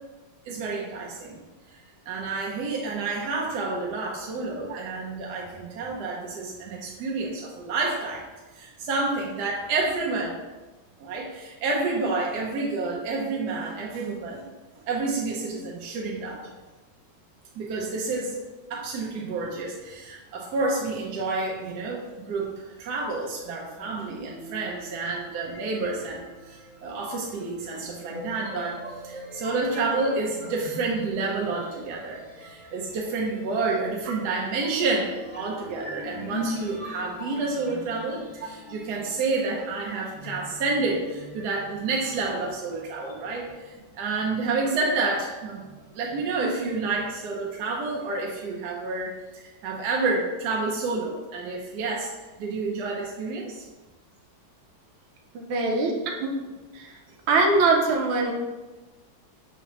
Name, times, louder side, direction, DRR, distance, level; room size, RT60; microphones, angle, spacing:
voice 1, 0.4-1.4 2.1-8.2 8.5-10.4 11.0-14.4 14.7-16.4 17.5-18.4 18.7-52.1 52.4-53.7 57.1-57.2, right 3 dB, 70° right, -2 dB, 1.0 m, -29 dB
sound 1, 23.8-43.8, left 1 dB, 50° left, 0.9 m, -42 dB
voice 2, 55.3-55.9 56.2-56.3 56.7-56.9 57.3-58.3, right 3 dB, 85° right, 1 dB, 1.5 m, -22 dB
5.8 x 2.8 x 2.9 m, 1.2 s
omnidirectional pair, 2.2 m